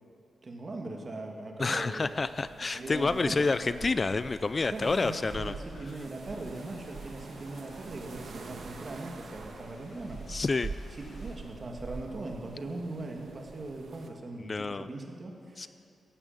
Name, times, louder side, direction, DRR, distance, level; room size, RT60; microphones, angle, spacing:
voice 1, 0.4-2.1 2.7-3.8 4.7-10.2 10.9-15.7, right 2 dB, 35° right, 1 dB, 2.3 m, -40 dB
voice 2, 1.6-5.5 10.3-10.7 14.4-14.9 15.6-15.7, left 3 dB, 35° left, 14 dB, 0.4 m, -29 dB
sound 1, 1.6-14.1, right 4 dB, 65° right, 1.6 m, -45 dB
Thunderstorm / Rain, 2.3-11.3, left 1 dB, 65° left, 5.0 m, -58 dB
15.5 x 10.0 x 9.0 m, 2.4 s
wide cardioid pair, 110°, 0 cm